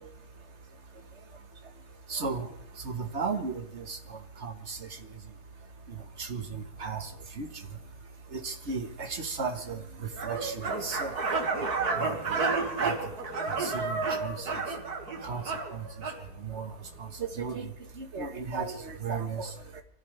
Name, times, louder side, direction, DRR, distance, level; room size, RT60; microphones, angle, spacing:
voice 1, 2.1-2.5 2.9-4.0 4.4-4.8 6.2-7.1 7.4-7.5 8.3-9.8 10.2-10.5 10.8-11.1 12.0-12.4 12.8-12.9 13.6-14.3 15.2-15.4 16.5-16.7 17.4-17.7 18.0-19.5, right 4 dB, 45° right, 6 dB, 1.8 m, -34 dB
sound 1, 10.2-16.2, right 4 dB, 85° right, 2.7 m, -31 dB
27.0 x 15.0 x 3.4 m, 0.66 s
omnidirectional pair, 1.6 m